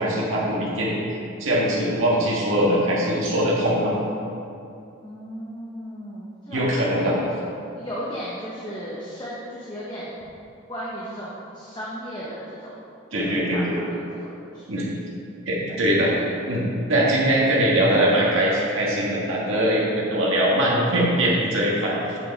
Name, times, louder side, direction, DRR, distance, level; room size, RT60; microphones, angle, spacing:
voice 1, 0.0-3.9 6.5-7.2 13.1-13.8 14.7-14.9 15.5-16.6 16.9-22.2, right 1 dB, 85° right, -5 dB, 1.7 m, -22 dB
voice 2, 5.0-7.2 7.7-10.2 10.7-12.8 13.1-14.6, equal, 20° left, -7 dB, 1.0 m, -35 dB
8.2 x 6.7 x 4.1 m, 2.6 s
head